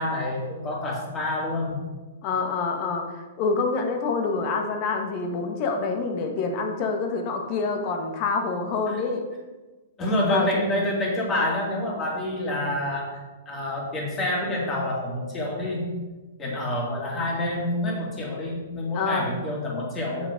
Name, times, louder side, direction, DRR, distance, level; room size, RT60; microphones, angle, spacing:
voice 1, 0.0-1.8 8.9-9.0 10.0-13.2 13.5-15.9 16.4-20.3, left 1 dB, 20° left, -3 dB, 2.7 m, -27 dB
voice 2, 2.2-9.2 10.2-10.5 18.9-19.3, left 4 dB, 40° left, 4 dB, 1.5 m, -27 dB
7.7 x 5.8 x 5.2 m, 1.2 s
hypercardioid pair, 130°, 0 cm